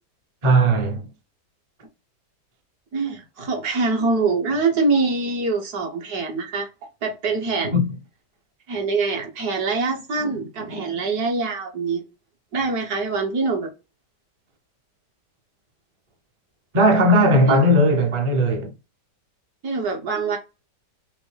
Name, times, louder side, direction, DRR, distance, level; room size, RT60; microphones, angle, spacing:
voice 1, 0.4-1.1 7.7-7.9 16.7-18.7, equal, 35° right, 0.5 m, -17 dB
voice 2, 2.9-6.7 7.0-7.7 8.7-12.0 12.5-13.7 17.5-17.6 19.6-20.4, right 3 dB, 65° right, 1.7 m, -24 dB
5.9 x 2.1 x 3.3 m
omnidirectional pair, 1.8 m